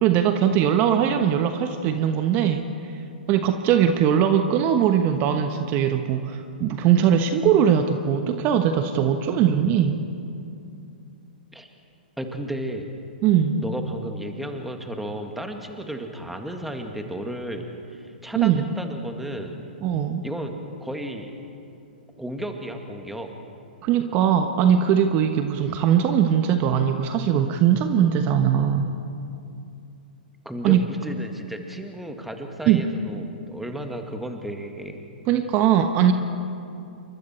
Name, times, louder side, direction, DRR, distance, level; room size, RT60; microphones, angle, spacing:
voice 1, 0.0-3.0 3.3-10.0 13.2-13.6 18.3-18.7 19.8-20.2 23.8-28.9 30.6-30.8 32.7-32.8 35.3-36.1, right 9 dB, 35° right, 7 dB, 1.2 m, -20 dB
voice 2, 12.2-12.9 13.6-19.6 20.2-20.5 20.8-21.3 22.2-23.3 30.5-35.0, right 1 dB, 5° right, 4 dB, 2.0 m, -33 dB
28.5 x 24.5 x 4.5 m, 2.6 s
hypercardioid pair, 120°, 5 cm